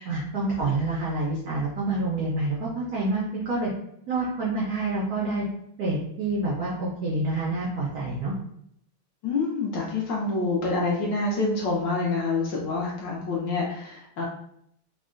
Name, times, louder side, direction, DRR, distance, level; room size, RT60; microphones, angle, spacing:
voice 1, 0.1-3.7 4.1-5.5 5.8-8.3, right 2 dB, 80° right, -5 dB, 0.8 m, -27 dB
voice 2, 9.2-14.2, left 3 dB, 75° left, -3 dB, 1.1 m, -27 dB
3.6 x 2.1 x 2.4 m, 0.71 s
omnidirectional pair, 2.3 m